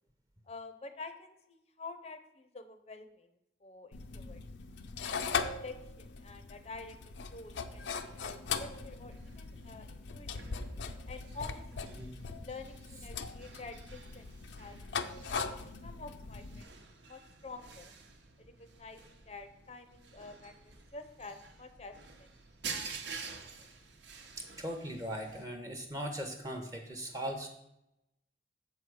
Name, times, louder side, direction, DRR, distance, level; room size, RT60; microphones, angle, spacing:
voice 1, 0.5-3.3 3.6-4.4 5.0-5.3 5.6-7.0 7.3-10.5 11.1-11.6 11.9-12.0 12.4-14.3 14.6-15.5 15.8-16.7 17.0-17.9 18.4-22.3, left 3 dB, 35° left, 8 dB, 0.6 m, -48 dB
sound 1, 3.9-16.6, left 5 dB, 75° left, 0.5 m, -40 dB
sound 2, 7.4-25.4, right 5 dB, 80° right, 1.0 m, -50 dB
voice 2, 24.4-27.5, equal, 20° right, 4 dB, 0.7 m, -39 dB
7.5 x 4.7 x 6.2 m, 0.86 s
head